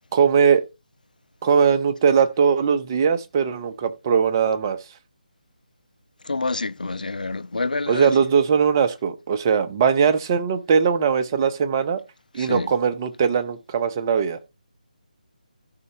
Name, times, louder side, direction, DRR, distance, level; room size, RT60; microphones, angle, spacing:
voice 1, 0.1-0.6 1.4-4.8 7.9-12.0 12.3-14.4, right 6 dB, 25° right, 0.7 m, -20 dB
voice 2, 6.2-8.1 12.4-12.7, left 3 dB, 70° left, 0.4 m, -27 dB
13.5 x 5.4 x 2.9 m
figure-of-eight pair, 150°, 5 cm